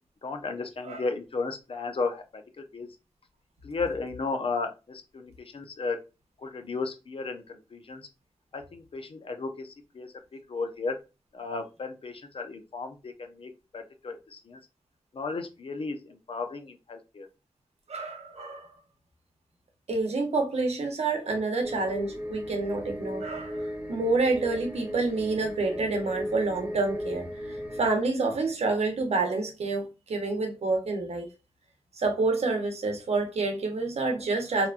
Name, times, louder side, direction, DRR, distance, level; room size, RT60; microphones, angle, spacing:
voice 1, 0.2-2.9 3.6-6.0 6.4-8.1 8.5-11.0 11.3-14.6 15.1-17.3, left 4 dB, 60° left, 0.6 m, -34 dB
voice 2, 17.9-18.7 19.9-31.3 31.9-34.7, right 3 dB, 80° right, 0.8 m, -28 dB
sound 1, 21.6-27.9, equal, 15° right, 1.0 m, -36 dB
2.9 x 2.2 x 2.4 m
cardioid pair, 50°, 11 cm